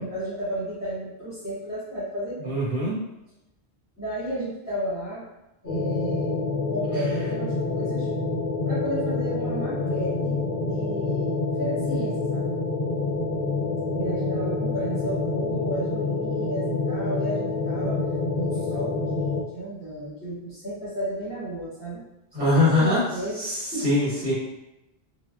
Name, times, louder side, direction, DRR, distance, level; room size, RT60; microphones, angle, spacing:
voice 1, 0.0-2.6 4.0-5.2 5.6-6.4 6.7-8.1 8.6-12.5 13.9-18.0 18.3-22.1 22.4-23.5 23.7-23.9, right 1 dB, 20° left, -12 dB, 0.9 m, -33 dB
voice 2, 2.4-3.0 22.3-23.0 23.3-24.3, left 2 dB, 60° right, -7 dB, 1.3 m, -22 dB
sound 1, 5.7-19.4, left 3 dB, 70° left, 0.8 m, -27 dB
2.6 x 2.1 x 2.2 m, 0.94 s
omnidirectional pair, 1.1 m